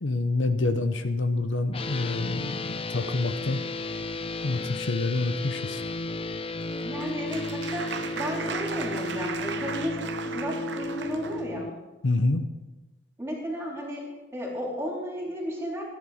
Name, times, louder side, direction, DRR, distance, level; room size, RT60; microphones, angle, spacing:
voice 1, 0.0-3.6 4.4-5.8 12.0-12.5, left 2 dB, 70° left, 9 dB, 0.8 m, -27 dB
sound 1, 1.7-11.7, left 2 dB, 25° left, 0.5 m, -34 dB
Applause, 6.6-11.4, right 6 dB, 60° right, 0.8 m, -37 dB
voice 2, 6.8-11.7 13.2-15.8, equal, 15° right, -3 dB, 3.7 m, -34 dB
15.0 x 10.5 x 5.0 m, 1.1 s
head